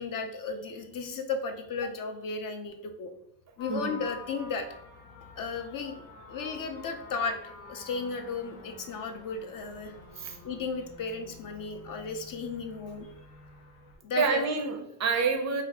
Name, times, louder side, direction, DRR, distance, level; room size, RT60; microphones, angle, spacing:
voice 1, 0.0-3.1 3.6-4.7 5.4-6.0 6.3-9.9 10.4-13.1 14.0-14.4, left 4 dB, 45° left, 5 dB, 0.4 m, -34 dB
sound 1, 3.6-14.0, left 3 dB, 85° left, 1.0 m, -49 dB
voice 2, 14.1-15.6, right 5 dB, 35° right, 4 dB, 0.4 m, -28 dB
2.6 x 2.4 x 3.3 m, 0.74 s
cardioid pair, 105°, 48 cm